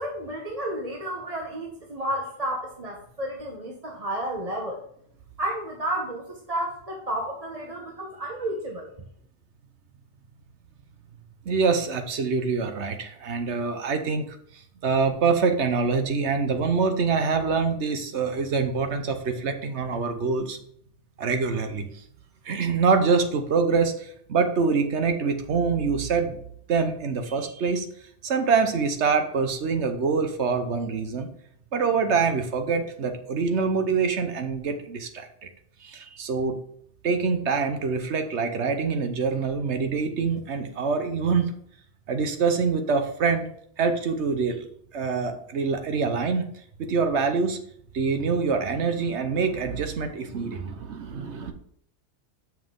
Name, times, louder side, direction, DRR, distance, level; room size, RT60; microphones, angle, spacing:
voice 1, 0.0-4.8 5.4-8.9, right 1 dB, 35° right, 0 dB, 1.0 m, -31 dB
voice 2, 11.4-20.6 21.2-21.8 22.4-26.4 26.7-27.9 28.2-31.3 31.7-35.5 35.8-36.6 37.0-41.6 42.1-43.5 43.8-44.7 44.9-46.5 46.8-47.6 47.9-51.5, right 5 dB, 75° right, 7 dB, 1.2 m, -25 dB
7.3 x 5.9 x 3.7 m, 0.66 s
omnidirectional pair, 1.2 m